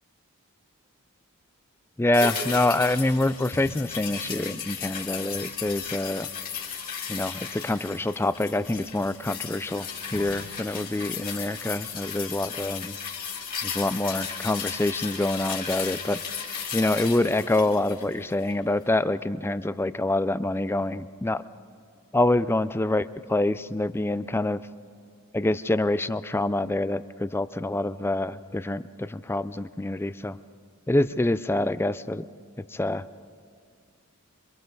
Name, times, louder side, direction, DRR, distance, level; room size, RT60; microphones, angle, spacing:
voice 1, 2.0-6.3 7.1-13.0 13.6-16.2 16.7-21.4 22.1-24.6 25.3-30.4 30.9-32.2 32.7-33.0, left 2 dB, 10° left, 14 dB, 0.4 m, -26 dB
sound 1, 2.1-18.6 18.9-19.0, left 6 dB, 40° left, 3.9 m, -35 dB
27.5 x 24.5 x 4.0 m, 2.2 s
head